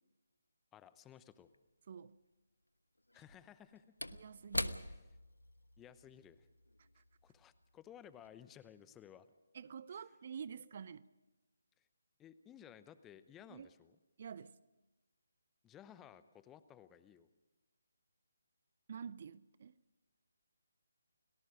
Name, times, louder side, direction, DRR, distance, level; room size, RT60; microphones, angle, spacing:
voice 1, 0.7-1.5 3.1-3.9 4.8-5.0 5.8-6.5 7.2-9.3 9.9-10.0 11.8-11.9 12.2-14.0 15.6-17.3, left 9 dB, 10° left, 0.8 m, -57 dB
Slam / Wood, 1.5-1.6 3.1-7.8 8.1-8.3, left 1 dB, 80° left, 1.1 m, -44 dB
voice 2, 4.1-4.8 7.0-7.1 9.5-11.0 13.5-13.7 14.2-14.6 18.9-19.7, right 7 dB, 40° right, 0.6 m, -48 dB
30.0 x 18.5 x 5.1 m
figure-of-eight pair, 145°, 0 cm